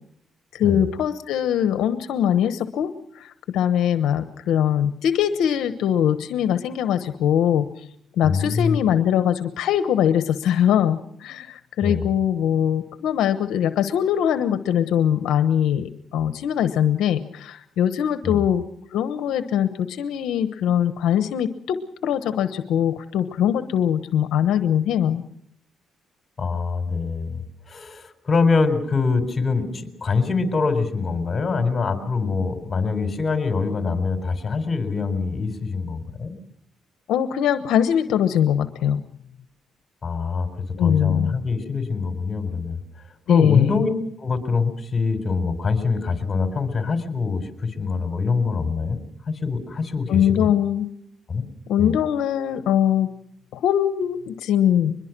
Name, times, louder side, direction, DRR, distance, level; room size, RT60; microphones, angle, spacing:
voice 1, 0.5-7.7 8.2-18.6 18.9-25.2 37.1-39.0 40.8-41.3 43.3-43.8 50.1-50.9 51.7-53.1 53.5-55.0, left 9 dB, 85° left, 10 dB, 1.1 m, -22 dB
voice 2, 8.2-8.8 11.8-12.0 18.2-18.4 26.4-36.3 40.0-42.8 43.3-43.9 44.2-49.0 49.3-50.5 51.3-51.5 51.8-51.9, left 4 dB, 35° left, 8 dB, 4.2 m, -24 dB
23.0 x 21.5 x 6.1 m, 0.70 s
cardioid pair, 90°, 0 cm